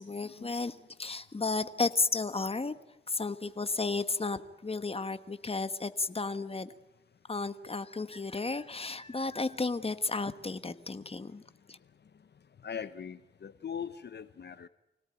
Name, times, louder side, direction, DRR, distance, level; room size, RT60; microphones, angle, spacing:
voice 1, 0.0-2.7 3.1-6.7 7.3-11.4 11.7-11.8, left 3 dB, 30° left, 1.4 m, -33 dB
voice 2, 12.6-14.7, left 7 dB, 65° left, 0.8 m, -40 dB
25.5 x 18.0 x 9.1 m
cardioid pair, 70°, 19 cm